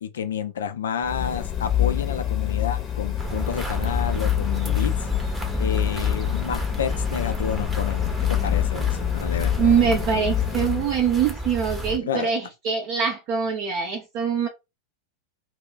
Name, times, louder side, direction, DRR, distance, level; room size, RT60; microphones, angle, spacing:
voice 1, 0.0-5.1 5.6-10.0 12.0-12.3, left 7 dB, 65° left, 0.5 m, -30 dB
sound 1, 1.0-10.9, left 11 dB, 25° left, 0.8 m, -26 dB
sound 2, 3.2-12.0, right 1 dB, 10° right, 0.8 m, -32 dB
voice 2, 9.6-14.5, right 7 dB, 40° right, 0.6 m, -23 dB
2.2 x 2.1 x 3.8 m
figure-of-eight pair, 90°, 0 cm